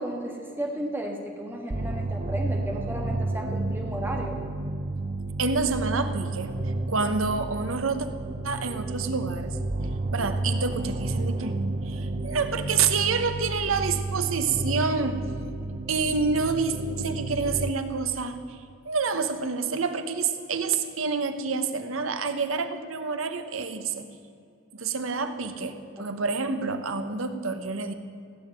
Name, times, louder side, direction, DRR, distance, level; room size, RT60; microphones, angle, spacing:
voice 1, 0.0-4.4 26.0-26.1, right 1 dB, 10° right, 1 dB, 1.6 m, -34 dB
sound 1, 1.7-17.7, right 2 dB, 35° right, 0.7 m, -31 dB
voice 2, 5.4-6.5 6.9-8.1 8.4-9.6 10.1-11.6 11.8-15.3 15.9-18.6 18.8-24.1 24.7-27.9, right 4 dB, 85° right, 8 dB, 1.0 m, -28 dB
16.0 x 6.9 x 9.0 m, 2.4 s
head